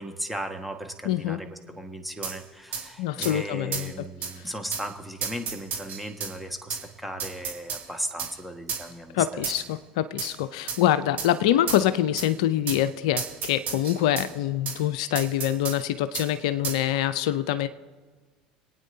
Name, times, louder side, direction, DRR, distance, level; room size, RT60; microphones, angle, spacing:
voice 1, 0.0-9.4, equal, ahead, 4 dB, 1.6 m, -36 dB
voice 2, 1.0-1.4 3.0-4.1 4.4-4.5 9.1-17.7, left 12 dB, 75° left, 13 dB, 0.5 m, -25 dB
sound 1, 2.2-2.4 2.7-2.8 3.2-3.3 3.7-3.9 4.2-4.3 4.7-4.9 5.2-6.3 6.7-6.8 7.2-7.8 8.2-8.3 8.7-8.8 9.4-9.7 10.2-10.3 10.7-10.8 11.2-11.3 11.7-11.8 12.2-12.3 12.7-12.8 13.2-14.3 14.6-14.8 15.1-15.8 16.1-16.3 16.6-16.8, right 6 dB, 50° right, 2.3 m, -32 dB
26.5 x 9.2 x 2.7 m, 1.4 s
hypercardioid pair, 75°, 4 cm